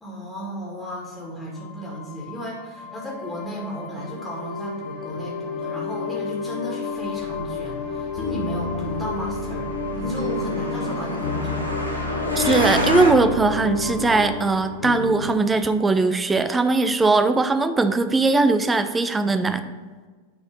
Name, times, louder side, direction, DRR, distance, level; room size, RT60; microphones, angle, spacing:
voice 1, 0.0-11.6, equal, 5° left, -4 dB, 2.0 m, -34 dB
sound 1, 1.5-16.0, left 4 dB, 30° left, 1.5 m, -33 dB
sound 2, 8.2-15.4, left 3 dB, 55° left, 0.9 m, -31 dB
Truck, 9.0-13.1, left 1 dB, 85° right, 1.1 m, -28 dB
voice 2, 12.4-19.7, right 3 dB, 15° right, 10 dB, 0.5 m, -20 dB
8.8 x 4.2 x 5.2 m, 1.4 s
figure-of-eight pair, 90°, 0 cm